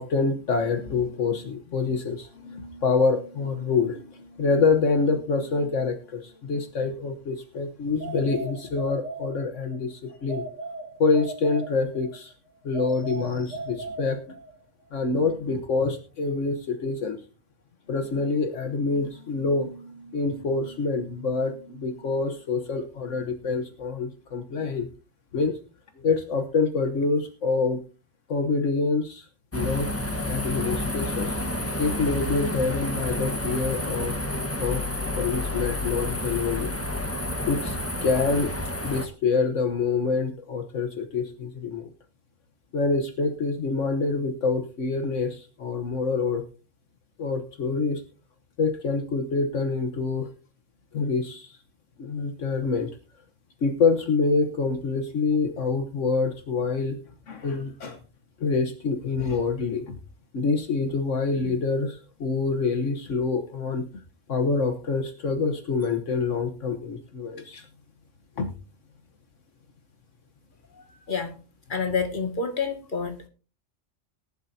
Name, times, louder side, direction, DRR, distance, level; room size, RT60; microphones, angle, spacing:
voice 1, 0.0-10.4 11.0-12.3 12.6-14.2 14.9-17.2 17.9-24.9 25.3-25.6 26.0-27.8 28.3-29.3 29.5-29.9 30.2-31.3 31.8-34.2 34.6-34.8 35.2-36.7 37.5-38.5 38.8-41.9 42.7-46.4 47.2-48.0 48.6-50.3 50.9-51.6 52.0-52.9 53.6-57.0 57.3-58.0 58.4-60.0 60.3-63.8 64.3-67.7 68.4-68.5, left 4 dB, 70° left, 7 dB, 1.5 m, -26 dB
sound 1, 8.0-9.8 10.3-12.2 12.7-14.6, right 2 dB, 75° right, 2.1 m, -37 dB
sound 2, 29.5-39.1, left 1 dB, 10° left, 1.3 m, -30 dB
voice 2, 70.7-71.4 71.7-73.3, left 5 dB, 40° left, 5 dB, 2.1 m, -29 dB
19.0 x 11.5 x 2.8 m, 0.34 s
omnidirectional pair, 1.3 m